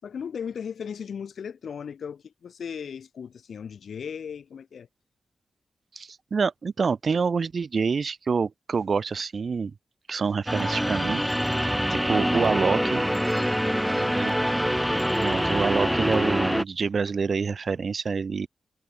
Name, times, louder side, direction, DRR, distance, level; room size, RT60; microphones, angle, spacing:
voice 1, 0.0-4.9 13.4-14.3, left 7 dB, 75° left, 6.2 m, -37 dB
voice 2, 5.9-9.7 10.1-11.2 11.9-13.0 14.1-14.5 15.2-18.5, right 5 dB, 45° right, 1.2 m, -27 dB
sound 1, 10.5-16.6, equal, ahead, 0.5 m, -25 dB
wide cardioid pair, 160°, 0 cm